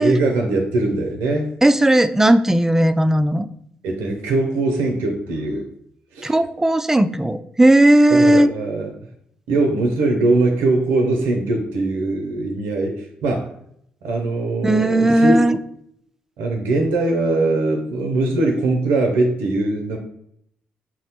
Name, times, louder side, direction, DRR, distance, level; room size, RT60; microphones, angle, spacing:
voice 1, 0.0-1.5 3.8-5.7 6.1-6.3 8.1-8.9 9.5-13.5 14.0-15.4 16.4-20.0, right 2 dB, 85° right, 3 dB, 0.5 m, -21 dB
voice 2, 1.6-3.5 6.2-8.5 14.6-15.6, right 1 dB, 10° right, 11 dB, 0.3 m, -15 dB
5.8 x 2.1 x 2.8 m, 0.71 s
supercardioid pair, 55°, 4 cm